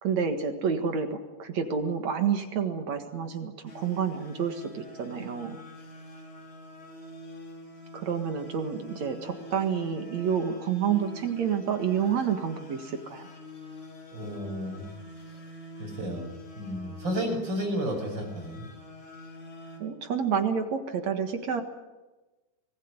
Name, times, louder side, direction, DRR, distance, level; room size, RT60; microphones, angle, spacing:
voice 1, 0.0-5.6 7.9-13.3 19.8-21.6, right 7 dB, 60° right, 7 dB, 2.8 m, -29 dB
sound 1, 3.7-19.8, left 1 dB, 40° left, 5.2 m, -46 dB
voice 2, 14.1-14.9 15.8-18.7, equal, 35° right, 3 dB, 6.5 m, -32 dB
25.0 x 20.0 x 9.8 m, 1.1 s
omnidirectional pair, 3.7 m